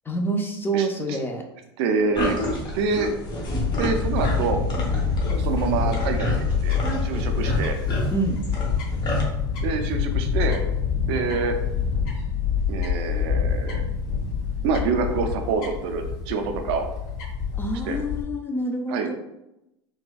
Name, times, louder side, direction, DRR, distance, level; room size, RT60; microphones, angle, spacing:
voice 1, 0.1-1.4 8.1-8.4 17.5-19.1, right 2 dB, 15° left, 3 dB, 0.4 m, -27 dB
voice 2, 0.7-1.2 1.8-3.1 3.8-4.6 5.4-6.4 6.6-7.8 9.6-10.6 11.1-11.6 12.7-13.8 14.6-16.9 17.8-18.0 18.9-19.1, right 5 dB, 70° right, 5 dB, 0.5 m, -26 dB
sound 1, 2.1-9.2, left 1 dB, 30° left, 1.0 m, -29 dB
Fowl / Bird, 3.6-18.2, left 6 dB, 60° left, 1.3 m, -26 dB
4.1 x 2.2 x 2.2 m, 0.87 s
supercardioid pair, 105°, 14 cm